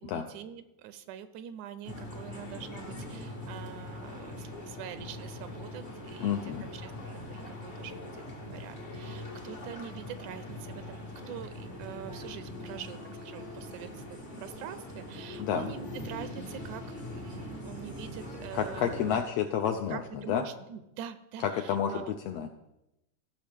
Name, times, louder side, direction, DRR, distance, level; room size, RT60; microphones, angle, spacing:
voice 1, 0.0-8.1 8.5-19.2 19.9-22.2, right 9 dB, 85° right, 11 dB, 2.0 m, -44 dB
sound 1, 1.8-19.2, left 1 dB, 65° left, 0.4 m, -42 dB
voice 2, 6.2-6.7 15.4-15.7 18.5-20.0 20.3-20.4 21.4-22.5, left 8 dB, 85° left, 5 dB, 1.5 m, -30 dB
16.5 x 6.4 x 3.4 m, 0.88 s
omnidirectional pair, 3.5 m